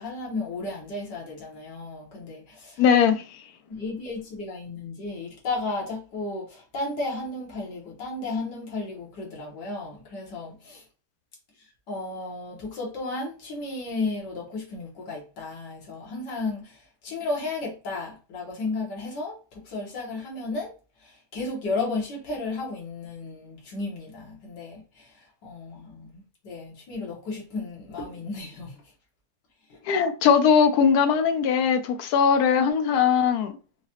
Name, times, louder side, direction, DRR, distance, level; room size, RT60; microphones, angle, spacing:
voice 1, 0.0-2.8 3.7-10.8 11.9-20.7 21.0-28.8 29.7-29.8, left 3 dB, 90° left, 1.8 m, -34 dB
voice 2, 2.8-3.2 29.9-33.5, left 7 dB, 70° left, 1.0 m, -20 dB
4.7 x 2.3 x 2.8 m
omnidirectional pair, 1.8 m